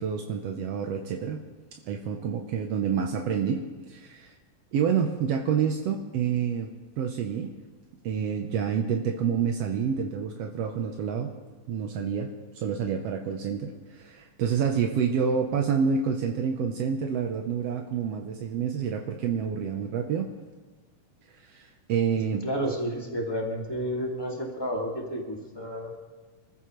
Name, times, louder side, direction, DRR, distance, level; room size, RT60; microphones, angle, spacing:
voice 1, 0.0-1.4 1.9-4.3 4.7-6.7 7.0-7.5 8.0-11.3 11.7-12.3 12.5-20.3 21.5-22.4, right 7 dB, 75° right, 3 dB, 1.5 m, -28 dB
voice 2, 22.4-25.9, equal, 10° left, -1 dB, 1.4 m, -31 dB
27.0 x 14.5 x 3.2 m, 1.3 s
omnidirectional pair, 3.9 m